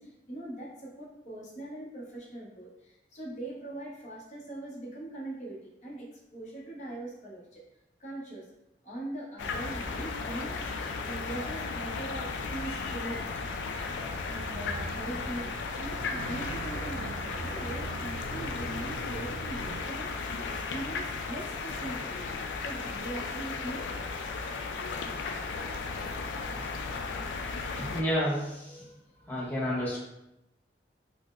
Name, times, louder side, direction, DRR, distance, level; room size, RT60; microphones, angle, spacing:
voice 1, 0.0-7.6 8.0-8.5 8.8-10.6 11.0-13.2 14.2-23.8, right 1 dB, 40° left, -5 dB, 0.9 m, -41 dB
sound 1, 9.4-28.0, left 4 dB, 90° left, 0.3 m, -35 dB
sound 2, 14.3-19.8, right 3 dB, 85° right, 0.3 m, -41 dB
voice 2, 27.8-28.9 29.2-30.0, equal, 10° left, -7 dB, 0.7 m, -30 dB
4.1 x 2.0 x 2.4 m, 0.87 s
head